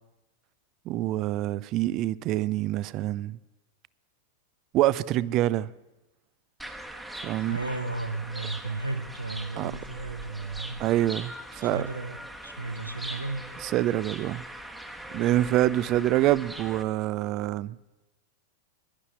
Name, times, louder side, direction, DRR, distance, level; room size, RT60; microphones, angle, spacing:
voice 1, 0.9-3.4 4.7-5.7 7.2-7.6 9.6-9.7 10.8-11.9 13.6-14.4 15.1-17.8, right 14 dB, 40° right, 0.3 m, -26 dB
sound 1, 6.6-16.8, right 1 dB, 5° right, 1.1 m, -41 dB
voice 2, 7.4-10.8 11.6-13.5, right 3 dB, 90° right, 0.9 m, -34 dB
11.0 x 11.0 x 7.7 m
figure-of-eight pair, 90°, 0 cm